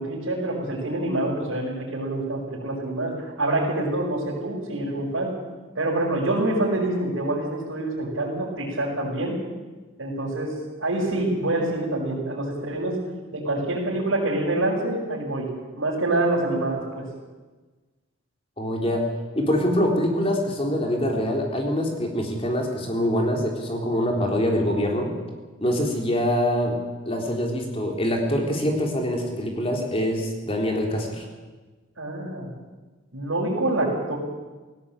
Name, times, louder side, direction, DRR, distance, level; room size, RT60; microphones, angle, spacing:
voice 1, 0.0-5.3 5.7-9.4 10.0-10.5 10.8-13.0 13.3-15.5 15.8-17.0 32.0-32.5 33.1-34.2, right 2 dB, 90° right, -7 dB, 5.9 m, -26 dB
voice 2, 18.6-25.1 25.6-26.8 27.1-31.2, equal, 30° left, 1 dB, 3.7 m, -24 dB
18.0 x 16.5 x 9.0 m, 1.3 s
head